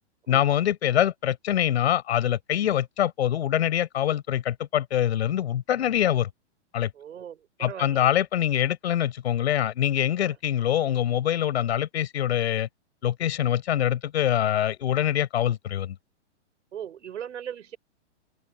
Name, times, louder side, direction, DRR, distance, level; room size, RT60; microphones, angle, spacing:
voice 1, 0.3-6.3 6.7-6.9 7.6-12.7 13.0-16.0, left 11 dB, 60° left, 6.1 m, -24 dB
voice 2, 6.9-8.2 10.2-10.3 16.7-17.8, right 9 dB, 85° right, 6.2 m, -39 dB
open air
hypercardioid pair, 165°, 36 cm